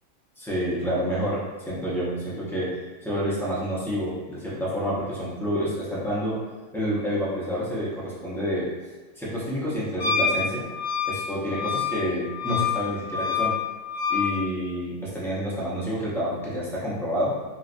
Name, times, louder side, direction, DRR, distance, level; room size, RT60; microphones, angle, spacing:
voice 1, 0.4-6.4 6.7-8.7 9.1-10.7 11.0-13.5 14.1-17.3, equal, 5° left, -9 dB, 0.4 m, -28 dB
Wind instrument woodwind instrument, 10.0-14.3, left 6 dB, 40° left, 0.8 m, -27 dB
3.9 x 2.3 x 2.5 m, 1.3 s
omnidirectional pair, 1.4 m